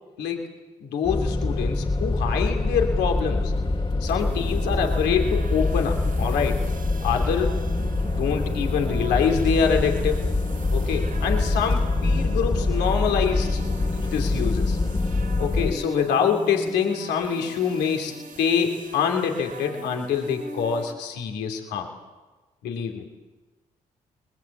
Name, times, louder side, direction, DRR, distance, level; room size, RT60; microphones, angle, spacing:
voice 1, 0.8-3.5 4.0-6.6 7.0-7.5 8.0-10.2 10.7-13.6 13.9-14.8 15.4-18.1 18.4-21.9 22.6-23.1, left 7 dB, 85° left, 3 dB, 2.8 m, -25 dB
sound 1, 1.1-15.7, left 2 dB, 30° left, 2.2 m, -25 dB
sound 2, 4.2-20.9, right 3 dB, 55° right, 3.8 m, -40 dB
23.5 x 21.0 x 8.4 m, 1.2 s
supercardioid pair, 45°, 17 cm